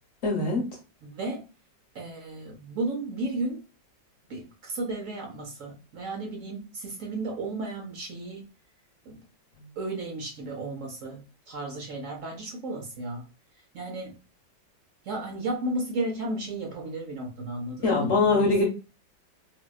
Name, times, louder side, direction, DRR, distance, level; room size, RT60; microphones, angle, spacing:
voice 1, 0.2-0.7 17.8-18.7, left 3 dB, 45° left, -2 dB, 1.2 m, -22 dB
voice 2, 1.0-1.4 1.9-3.6 4.3-8.5 9.0-9.2 9.8-13.2 13.7-14.2 15.0-18.5, right 2 dB, 70° right, 1 dB, 0.7 m, -34 dB
4.2 x 2.2 x 2.2 m, 0.32 s
omnidirectional pair, 2.1 m